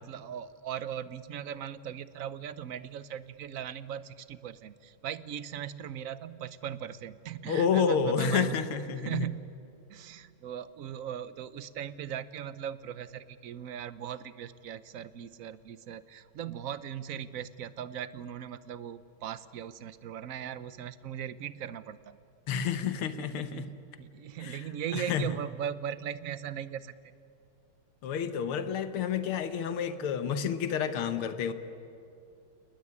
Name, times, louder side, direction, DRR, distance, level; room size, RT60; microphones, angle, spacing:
voice 1, 0.0-8.7 9.0-9.5 9.9-22.2 22.5-22.7 23.2-23.7 24.0-26.9, right 9 dB, 65° right, 15 dB, 0.8 m, -39 dB
voice 2, 7.5-9.3 22.5-23.7 24.4-24.7 24.9-25.3 28.0-31.5, left 7 dB, 85° left, 10 dB, 2.0 m, -29 dB
29.5 x 20.0 x 9.7 m, 2.5 s
omnidirectional pair, 2.3 m